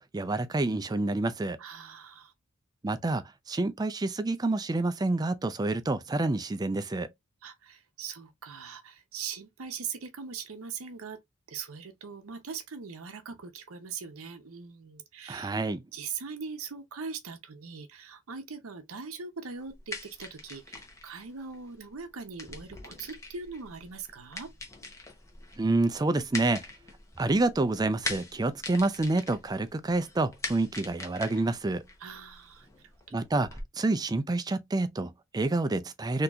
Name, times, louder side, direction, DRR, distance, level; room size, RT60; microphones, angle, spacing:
voice 1, 0.0-1.6 2.8-7.1 15.3-15.8 25.6-26.7 27.2-31.8 33.1-33.5 33.7-36.2, right 2 dB, 20° right, 0.3 m, -28 dB
voice 2, 1.6-2.3 7.4-11.2 11.5-15.6 15.9-24.5 32.0-32.7, right 5 dB, 75° right, 0.7 m, -41 dB
sound 1, 19.6-33.6, left 2 dB, 15° left, 0.8 m, -43 dB
3.8 x 2.8 x 2.3 m
head